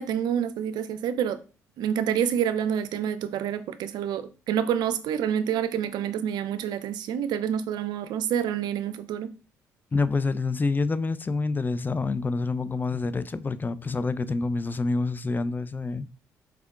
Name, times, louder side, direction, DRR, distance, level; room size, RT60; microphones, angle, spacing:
voice 1, 0.0-1.4 1.8-9.3, right 9 dB, 65° right, 0.4 m, -28 dB
voice 2, 9.9-16.1, left 3 dB, 25° left, 0.4 m, -27 dB
4.6 x 3.5 x 2.4 m
hypercardioid pair, 55°, 8 cm